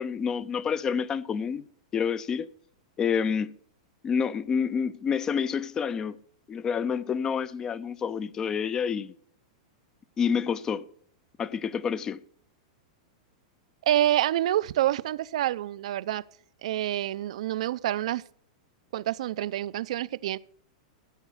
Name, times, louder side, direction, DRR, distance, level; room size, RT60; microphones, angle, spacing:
voice 1, 0.0-1.6 1.9-2.5 3.0-3.5 4.0-6.2 6.5-9.1 10.2-10.9 11.4-12.2, left 6 dB, 15° left, 0.4 m, -28 dB
voice 2, 13.9-16.2 16.6-18.2 18.9-20.4, right 13 dB, 65° right, 0.5 m, -27 dB
14.5 x 8.1 x 6.3 m
supercardioid pair, 165°, 4 cm